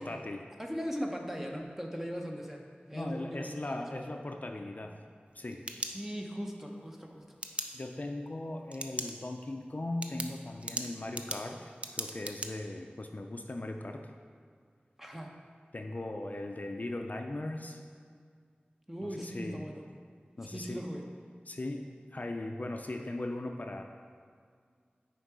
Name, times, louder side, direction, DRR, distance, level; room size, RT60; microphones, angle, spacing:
voice 1, 0.0-0.4 2.9-5.0 5.3-5.7 7.7-14.1 15.7-17.8 19.0-19.6 20.4-20.9 21.5-23.8, left 2 dB, 45° left, 4 dB, 0.4 m, -38 dB
voice 2, 0.6-2.6 2.9-3.8 5.8-7.4 15.0-15.3 18.9-19.8 20.5-21.0, equal, 10° right, 1 dB, 0.8 m, -39 dB
sound 1, 5.3-6.5 7.4-7.7 8.7-9.1 9.5-9.6 10.0-12.5, right 1 dB, 35° right, 0.5 m, -38 dB
6.4 x 4.5 x 4.7 m, 2.1 s
wide cardioid pair, 55°, 4 cm